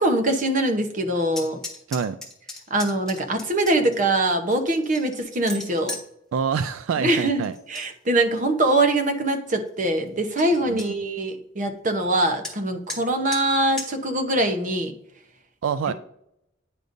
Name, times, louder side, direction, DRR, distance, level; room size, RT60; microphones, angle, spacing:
voice 1, 0.0-1.6 2.7-5.9 7.0-14.9, right 1 dB, 40° right, 6 dB, 0.8 m, -23 dB
sound 1, 1.3-4.0 4.5-6.1 7.4-7.9 8.2-8.7 9.3-9.4 9.7-9.8 10.1-10.2 10.4-10.9 12.4-12.6 12.9-13.0 13.3-13.4 13.8-13.9, left 2 dB, 5° left, 1.2 m, -36 dB
voice 2, 6.3-7.5 10.7-10.8 15.6-15.9, right 6 dB, 80° right, 12 dB, 0.3 m, -26 dB
9.5 x 5.1 x 2.6 m, 0.77 s
head